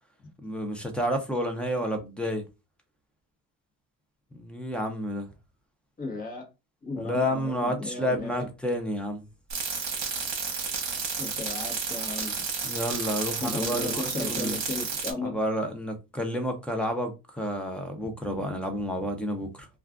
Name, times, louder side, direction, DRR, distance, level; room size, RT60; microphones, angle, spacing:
voice 1, 0.4-2.4 4.3-5.3 7.0-9.2 12.6-14.5 15.2-19.7, equal, 5° left, 0.5 m, -30 dB
voice 2, 6.0-6.5 6.8-8.5 11.2-12.4 13.1-15.4, left 2 dB, 25° left, 1.0 m, -35 dB
sound 1, 9.5-15.1, right 5 dB, 50° right, 1.0 m, -31 dB
2.4 x 2.4 x 3.4 m
cardioid pair, 140°, 35 cm